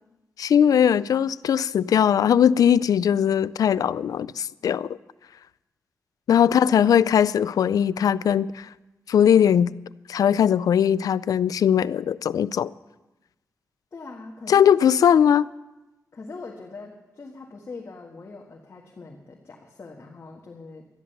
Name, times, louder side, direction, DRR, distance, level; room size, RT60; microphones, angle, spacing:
voice 1, 0.4-5.0 6.3-8.7 9.1-9.7 10.1-12.7 14.5-15.5, left 8 dB, 80° left, 0.3 m, -20 dB
voice 2, 6.5-6.8 13.9-14.7 16.1-20.9, left 3 dB, 50° left, 1.6 m, -41 dB
13.0 x 11.0 x 6.7 m
cardioid pair, 75°, 6 cm